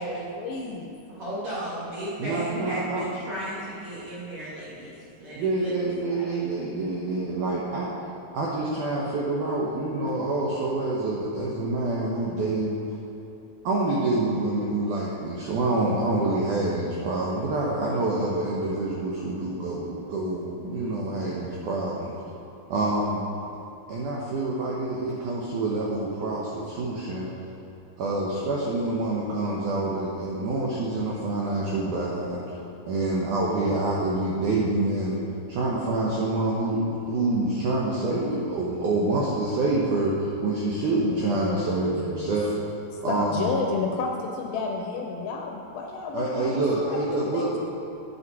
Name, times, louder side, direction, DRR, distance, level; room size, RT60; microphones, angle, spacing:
voice 1, 0.0-0.9 41.0-42.3 42.9-47.6, left 4 dB, 80° left, 1 dB, 2.3 m, -32 dB
voice 2, 1.1-6.6, right 1 dB, 45° right, -9 dB, 2.1 m, -35 dB
voice 3, 2.2-3.0 5.4-7.9 8.3-12.8 13.6-22.1 22.7-23.2 23.9-27.3 28.0-32.6 32.9-35.2 35.5-42.5 43.0-43.5 46.1-47.6, right 2 dB, 75° right, -5 dB, 1.8 m, -27 dB
8.8 x 8.0 x 4.7 m, 2.8 s
omnidirectional pair, 4.7 m